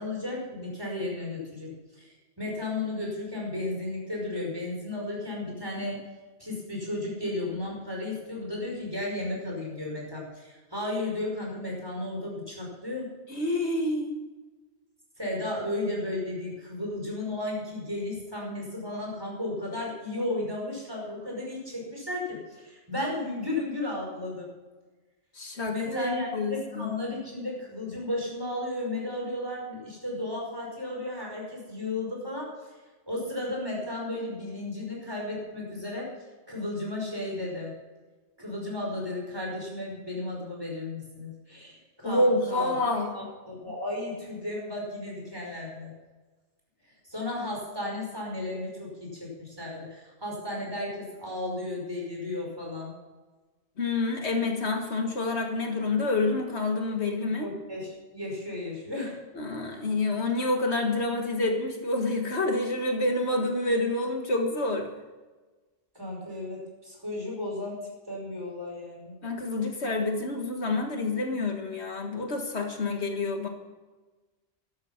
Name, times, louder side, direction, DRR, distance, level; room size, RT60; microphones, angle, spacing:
voice 1, 0.0-6.0 6.4-13.1 15.2-24.5 25.7-32.5 33.1-36.1 36.5-37.7 38.4-42.8 43.1-45.9 47.1-52.9 57.4-59.2 65.9-67.8 68.1-69.2, left 2 dB, 20° right, -2 dB, 5.2 m, -34 dB
voice 2, 13.3-14.1 25.4-26.9 42.0-43.1 53.8-57.5 59.4-64.9 69.2-73.5, left 2 dB, 70° left, 3 dB, 1.9 m, -28 dB
13.5 x 11.5 x 5.8 m, 1.2 s
omnidirectional pair, 1.1 m